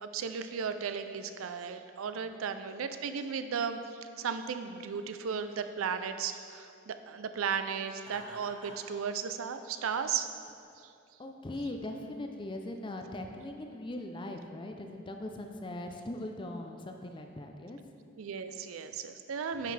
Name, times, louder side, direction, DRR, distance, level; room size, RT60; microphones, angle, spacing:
voice 1, 0.0-3.8 4.2-10.3 10.8-10.9 18.2-19.7, right 6 dB, 85° right, 9 dB, 0.4 m, -35 dB
Laughter, 8.0-8.9, equal, 25° right, 1.6 m, -48 dB
voice 2, 11.2-17.8 19.6-19.7, left 1 dB, 25° left, 4 dB, 0.5 m, -40 dB
10.0 x 5.8 x 3.3 m, 2.4 s
head